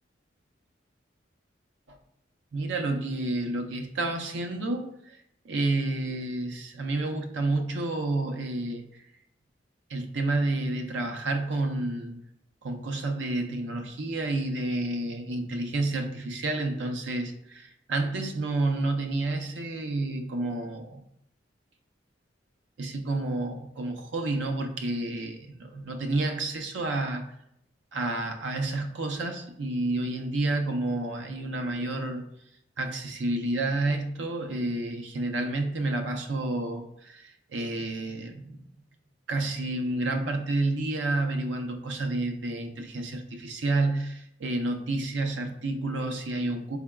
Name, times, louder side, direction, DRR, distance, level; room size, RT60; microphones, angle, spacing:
voice 1, 2.5-5.2 5.4-9.0 9.9-12.2 12.6-21.0 22.8-27.2 27.9-32.2 32.8-38.6 39.3-46.8, right 2 dB, 85° right, 4 dB, 0.6 m, -30 dB
4.4 x 3.5 x 2.2 m, 0.76 s
head